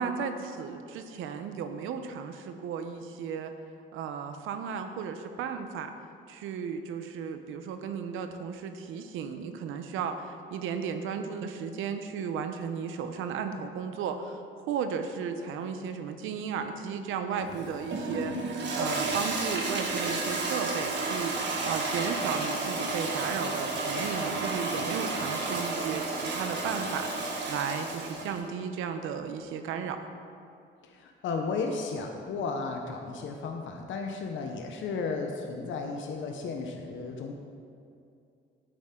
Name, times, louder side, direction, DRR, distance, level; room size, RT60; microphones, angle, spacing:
voice 1, 0.0-3.5 3.9-5.9 6.3-14.4 14.7-21.4 21.6-30.0, right 6 dB, 90° right, 8 dB, 0.8 m, -34 dB
Toilet flush, 17.4-28.4, right 3 dB, 60° right, 1.6 m, -32 dB
Coin (dropping), 23.4-24.0 24.4-24.5 25.2-25.3 25.5-25.8 26.3-26.5 27.2-27.4, left 2 dB, 20° left, 2.4 m, -51 dB
voice 2, 30.9-37.3, left 4 dB, 75° left, 3 dB, 0.9 m, -34 dB
11.5 x 8.7 x 3.8 m, 2.5 s
cardioid pair, 90°, 20 cm